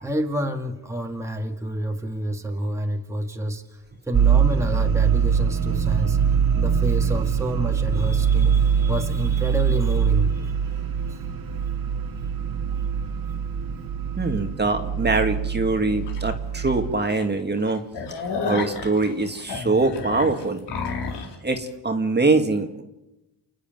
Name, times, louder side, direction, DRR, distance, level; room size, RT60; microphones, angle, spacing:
voice 1, 0.0-10.8 11.1-11.2, right 1 dB, 5° right, 3 dB, 2.0 m, -29 dB
sound 1, 4.1-17.0, right 7 dB, 55° right, 2.2 m, -23 dB
voice 2, 14.2-17.8 18.4-20.6 21.4-22.8, right 3 dB, 25° right, 5 dB, 2.1 m, -23 dB
sound 2, 16.1-16.2 16.7-16.8 17.1-17.2 17.6-21.3, left 4 dB, 75° left, 3.9 m, -31 dB
29.0 x 10.5 x 9.2 m, 0.94 s
cardioid pair, 90°, 41 cm